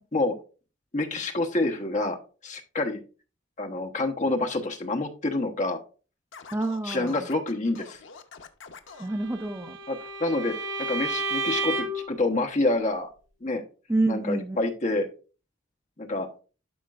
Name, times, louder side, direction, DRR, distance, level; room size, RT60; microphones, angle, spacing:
voice 1, 0.9-2.2 2.4-3.0 3.6-5.8 6.8-8.0 9.9-10.5 10.9-13.1 13.4-13.6 14.1-15.1 16.0-16.3, left 2 dB, 40° left, 1.0 m, -27 dB
Scratching (performance technique), 6.3-9.1, left 5 dB, 75° left, 0.8 m, -46 dB
voice 2, 6.5-7.2 9.0-9.8 13.9-14.6, right 2 dB, 15° right, 0.4 m, -27 dB
Bowed string instrument, 9.1-12.1, right 2 dB, 65° right, 1.3 m, -31 dB
12.0 x 5.1 x 2.4 m
head